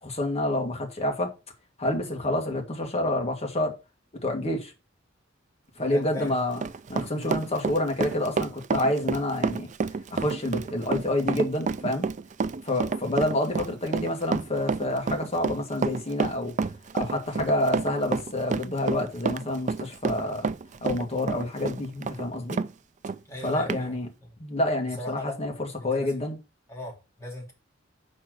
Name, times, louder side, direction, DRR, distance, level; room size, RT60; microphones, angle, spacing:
voice 1, 0.0-1.3 1.8-3.8 4.2-4.7 5.8-6.6 6.9-9.7 10.1-12.1 12.6-16.5 16.9-20.5 20.8-22.6 23.4-24.1 24.4-26.4, left 1 dB, 35° left, 1.9 m, -28 dB
voice 2, 5.8-6.5 7.1-7.4 23.3-24.3 25.0-25.4 25.8-26.2 26.7-27.5, left 1 dB, 15° left, 3.0 m, -38 dB
Run, 6.0-22.7 23.0-23.2 23.7-23.8, right 4 dB, 40° right, 0.4 m, -29 dB
5.7 x 4.5 x 6.2 m
head